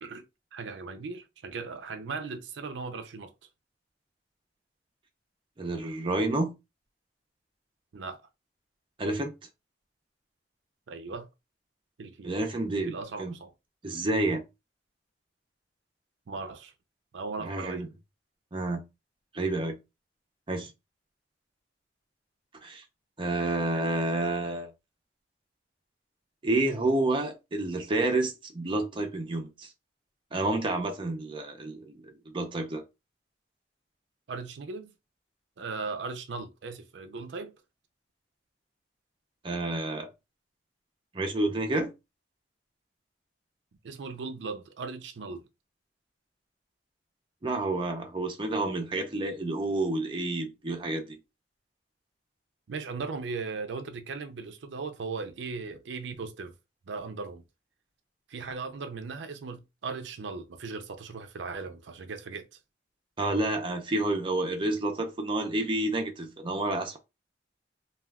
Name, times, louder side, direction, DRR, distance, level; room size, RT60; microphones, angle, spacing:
voice 1, 0.5-3.3 7.9-8.2 10.9-11.3 12.0-12.4 12.9-13.5 16.3-16.7 17.1-17.9 34.3-34.9 35.6-37.6 43.8-45.5 52.7-56.5 56.9-57.4 58.3-62.5, right 4 dB, 85° right, 0.5 m, -38 dB
voice 2, 5.6-6.6 9.0-9.3 12.2-12.9 13.2-13.4 13.8-14.4 17.4-17.9 18.5-18.8 19.3-19.8 20.5-20.7 22.6-22.8 23.2-24.7 26.4-29.7 30.3-32.8 39.4-40.1 41.1-41.9 47.4-51.2 63.2-67.0, right 2 dB, 30° right, 0.5 m, -29 dB
2.3 x 2.2 x 3.4 m
head